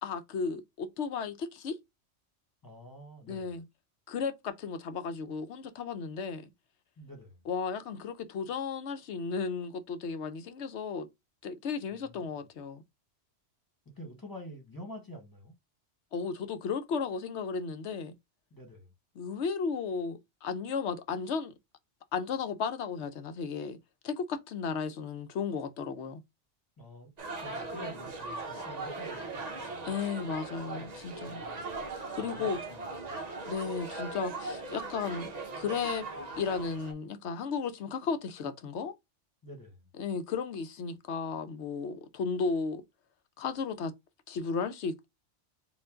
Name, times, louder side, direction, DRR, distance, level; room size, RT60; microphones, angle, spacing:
voice 1, 0.0-1.8 3.3-3.6 4.1-6.5 7.5-11.1 11.4-12.8 16.1-18.1 19.2-21.5 22.1-23.8 24.0-26.2 29.8-31.4 32.1-32.6 33.5-36.1 36.4-38.9 40.0-42.8 43.4-43.9 44.3-45.1, left 5 dB, 75° left, 1.0 m, -34 dB
voice 2, 2.6-3.5 7.0-7.4 11.9-12.4 13.8-15.5 18.5-18.9 26.8-27.1 27.4-29.8 30.7-31.8 32.2-33.1 39.4-39.9, equal, 15° left, 1.7 m, -48 dB
sound 1, 27.2-36.9, right 3 dB, 40° right, 0.8 m, -39 dB
4.5 x 2.6 x 3.6 m
omnidirectional pair, 1.2 m